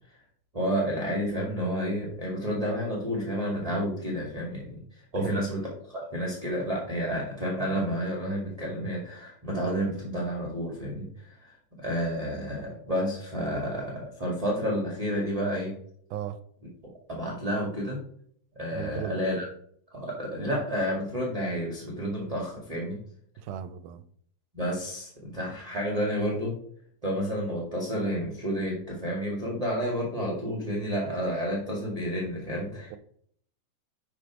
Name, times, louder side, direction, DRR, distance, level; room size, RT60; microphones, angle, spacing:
voice 1, 0.5-15.8 17.1-18.0 18.5-19.4 19.9-23.0 24.5-26.6 27.0-33.0, equal, 15° right, 1.3 m, -30 dB
voice 2, 5.1-5.4 16.1-16.4 18.7-19.2 23.4-24.0 32.9-33.0, right 10 dB, 80° right, 2.1 m, -36 dB
10.5 x 4.1 x 4.8 m
omnidirectional pair, 3.7 m